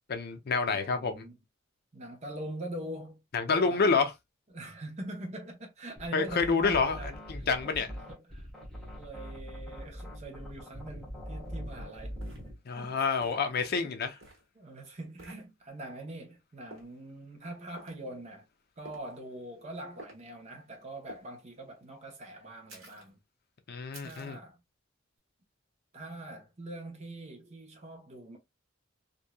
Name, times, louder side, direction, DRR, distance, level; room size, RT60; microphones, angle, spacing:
voice 1, 0.1-1.2 3.3-4.1 6.1-7.0 7.3-7.9 12.7-14.1 23.7-24.4, left 4 dB, 50° left, 0.5 m, -28 dB
voice 2, 0.7-1.4 1.9-3.2 3.5-3.8 4.5-8.4 9.0-12.3 12.7-13.1 13.5-13.9 14.5-18.5 18.8-23.2 24.0-24.6 25.9-28.4, right 1 dB, 35° right, 0.8 m, -43 dB
sound 1, 6.0-12.6, equal, ahead, 0.9 m, -42 dB
sound 2, 11.4-11.5 12.2-12.5 13.2-13.5 14.2-14.5 15.2-15.4 16.7-16.9 17.8-18.0 18.8-19.2 20.0-20.2 21.1-21.3 22.7-23.1 23.9-24.4, right 2 dB, 75° right, 1.3 m, -50 dB
3.0 x 2.6 x 2.2 m
head